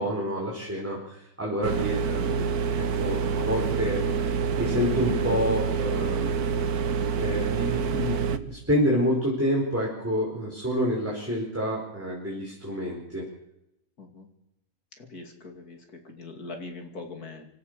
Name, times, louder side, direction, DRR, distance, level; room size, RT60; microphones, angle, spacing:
voice 1, 0.0-6.3 7.2-13.2, equal, 10° right, -4 dB, 4.8 m, -28 dB
sound 1, 1.6-8.4, right 6 dB, 80° right, 1.6 m, -27 dB
voice 2, 15.0-17.5, left 3 dB, 80° left, 4 dB, 3.2 m, -42 dB
25.5 x 15.0 x 6.8 m, 0.84 s
omnidirectional pair, 1.6 m